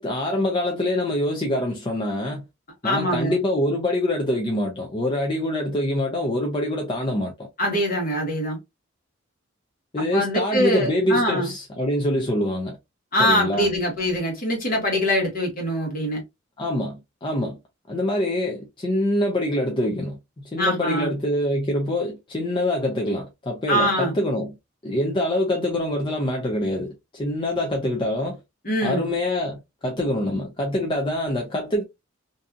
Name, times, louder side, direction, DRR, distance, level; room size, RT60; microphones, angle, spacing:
voice 1, 0.0-2.4 2.8-7.5 9.9-12.8 13.2-13.7 16.6-17.6 17.9-24.6 24.8-28.4 28.8-31.8, left 1 dB, 25° left, 0.5 m, -25 dB
voice 2, 2.8-3.4 7.6-8.6 10.1-11.5 13.1-16.2 20.6-21.1 23.7-24.2 28.6-29.0, equal, 45° left, 1.2 m, -23 dB
2.6 x 2.3 x 2.5 m
head